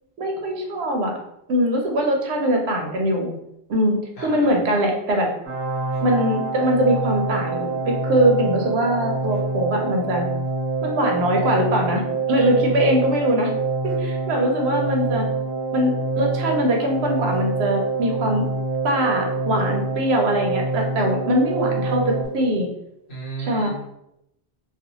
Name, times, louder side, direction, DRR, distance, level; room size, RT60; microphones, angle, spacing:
voice 1, 0.2-1.2 1.5-3.3 3.7-5.3 6.0-10.3 10.8-12.0 12.3-13.5 13.8-15.3 15.7-18.4 18.8-22.7 23.5-23.7, equal, 85° right, 2 dB, 0.8 m, -22 dB
voice 2, 4.2-4.6 23.1-23.7, right 4 dB, 85° left, -6 dB, 1.1 m, -33 dB
sound 1, 5.4-22.2, right 3 dB, 30° right, 0.7 m, -26 dB
2.4 x 2.3 x 2.8 m, 0.81 s
omnidirectional pair, 1.1 m